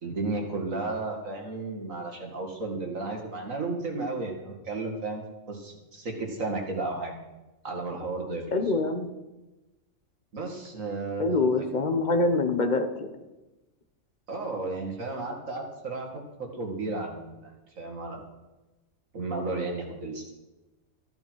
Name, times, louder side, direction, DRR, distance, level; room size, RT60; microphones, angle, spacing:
voice 1, 0.0-7.2 7.6-8.4 10.3-11.6 14.3-16.1 16.4-18.2 19.1-20.3, right 3 dB, 75° right, 2 dB, 2.6 m, -33 dB
voice 2, 8.5-9.1 11.2-13.1, left 3 dB, 35° left, 6 dB, 1.2 m, -25 dB
14.0 x 10.5 x 4.8 m, 1.1 s
omnidirectional pair, 1.4 m